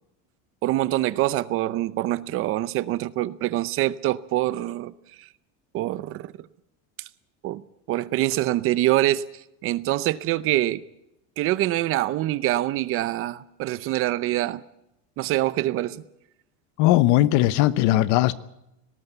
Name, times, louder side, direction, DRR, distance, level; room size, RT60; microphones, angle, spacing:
voice 1, 0.6-4.9 5.2-5.3 5.7-6.3 7.4-7.6 7.9-9.2 9.6-10.8 11.4-14.6 15.2-16.0, right 15 dB, 35° right, 17 dB, 0.7 m, -25 dB
voice 2, 16.8-18.3, left 15 dB, 50° left, 17 dB, 1.0 m, -19 dB
19.0 x 18.0 x 8.0 m, 0.85 s
cardioid pair, 170°, 37 cm